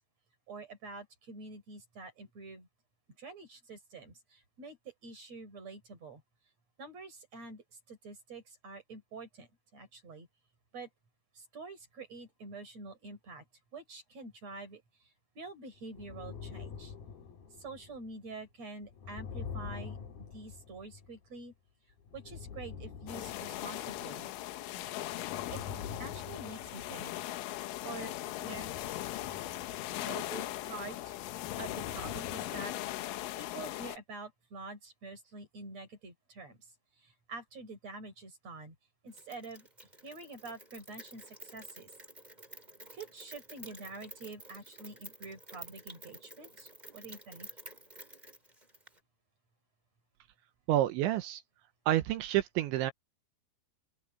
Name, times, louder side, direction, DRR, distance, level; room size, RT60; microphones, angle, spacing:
voice 1, 0.5-2.7 3.2-6.2 6.8-10.3 10.7-10.9 11.4-13.4 13.7-16.9 17.6-20.0 20.3-21.5 22.1-24.3 25.5-25.6 26.0-27.1 27.8-28.1 28.4-28.7 30.0-31.2 31.6-33.0 33.3-36.6 37.0-38.8 39.0-39.7 40.0-41.9 42.9-47.5, right 3 dB, 35° right, 5.5 m, -47 dB
sound 1, 15.8-18.2 18.8-21.5 22.0-24.5 24.8-27.7 28.2-32.8, left 6 dB, 55° left, 3.8 m, -46 dB
sound 2, 23.1-34.0, left 15 dB, 90° left, 3.7 m, -39 dB
Rain, 39.1-49.0, right 1 dB, 10° right, 5.0 m, -51 dB
voice 2, 50.7-51.4 51.9-52.9, right 13 dB, 80° right, 3.3 m, -29 dB
open air
omnidirectional pair, 5.5 m